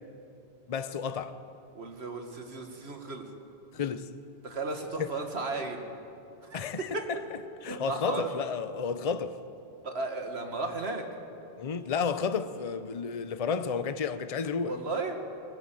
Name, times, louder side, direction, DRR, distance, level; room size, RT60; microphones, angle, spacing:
voice 1, 0.7-1.4 3.7-4.1 5.0-5.1 6.5-7.2 7.6-9.4 11.6-14.7, left 6 dB, 40° left, 0.8 m, -32 dB
voice 2, 1.7-3.3 4.4-5.9 6.4-7.0 7.7-8.3 9.8-11.1 14.6-15.2, right 3 dB, 85° right, 2.2 m, -35 dB
20.5 x 18.5 x 7.6 m
omnidirectional pair, 1.0 m